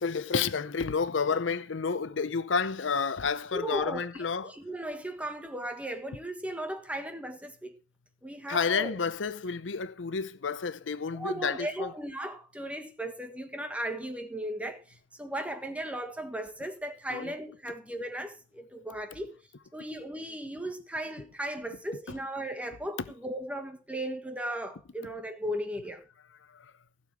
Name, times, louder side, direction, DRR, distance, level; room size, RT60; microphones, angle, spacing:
voice 1, 0.0-4.6 8.5-11.9 17.1-17.3 26.5-26.7, left 5 dB, 85° left, 0.7 m, -30 dB
voice 2, 3.5-7.7 8.2-8.9 11.1-14.8 15.2-19.3 19.7-26.0, right 1 dB, 5° right, 1.5 m, -36 dB
15.5 x 6.8 x 4.6 m
head